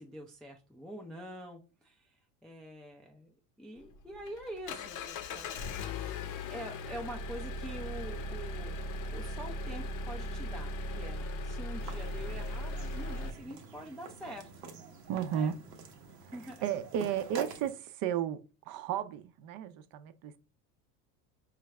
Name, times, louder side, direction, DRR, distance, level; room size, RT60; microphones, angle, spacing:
voice 1, 0.0-3.3 3.6-5.6 6.5-8.8 9.1-14.6 15.3-15.5 16.3-16.6, right 1 dB, ahead, 0.4 m, -45 dB
Engine, 3.8-13.3, left 1 dB, 40° left, 0.7 m, -38 dB
sound 1, 11.8-17.7, right 5 dB, 90° right, 0.8 m, -46 dB
voice 2, 15.1-15.6 16.6-20.4, right 9 dB, 45° right, 0.5 m, -34 dB
4.6 x 2.4 x 3.1 m
hypercardioid pair, 80°, 47 cm